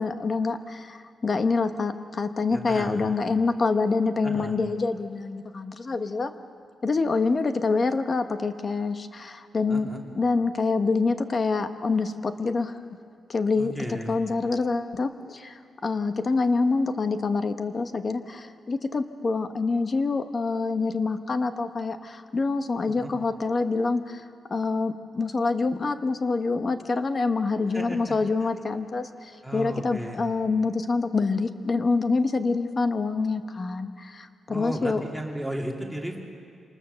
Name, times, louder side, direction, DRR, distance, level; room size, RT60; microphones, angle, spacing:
voice 1, 0.0-6.3 6.8-9.9 10.1-12.8 13.3-24.2 24.5-35.0, left 4 dB, 30° left, 9 dB, 1.0 m, -26 dB
voice 2, 2.5-3.1 4.2-4.5 9.7-10.0 13.6-14.2 22.8-23.1 27.7-28.1 28.4-28.5 29.4-30.2 34.5-36.2, equal, ahead, 0 dB, 2.6 m, -34 dB
27.0 x 20.0 x 6.9 m, 2.3 s
wide cardioid pair, 165°, 0 cm